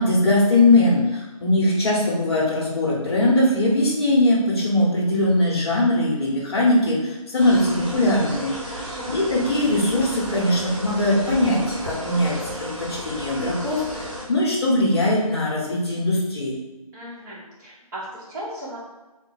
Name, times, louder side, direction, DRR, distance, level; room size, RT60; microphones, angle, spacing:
voice 1, 0.0-8.8 9.1-16.6, left 1 dB, 45° left, -5 dB, 0.8 m, -21 dB
sound 1, 7.4-14.3, equal, 55° right, 1.1 m, -33 dB
voice 2, 8.7-9.1 16.9-18.8, right 1 dB, 30° right, -9 dB, 1.0 m, -37 dB
2.6 x 2.0 x 3.8 m, 1.1 s
hypercardioid pair, 175°, 19 cm